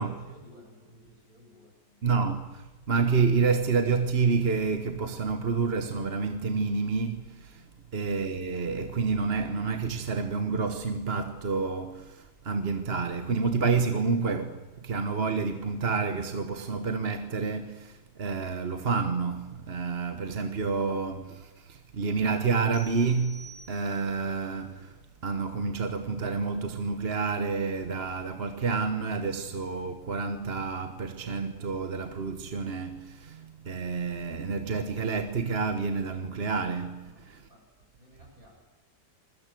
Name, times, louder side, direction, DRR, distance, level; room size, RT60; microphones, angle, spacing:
voice 1, 0.0-2.1 7.4-7.6 37.0-38.5, left 1 dB, 55° right, 8.5 m, -56 dB
voice 2, 2.0-7.6 7.9-37.4, right 4 dB, 40° right, 1.4 m, -29 dB
sound 1, 22.7-24.3, right 1 dB, 55° left, 6.1 m, -50 dB
27.5 x 22.0 x 7.7 m
omnidirectional pair, 1.8 m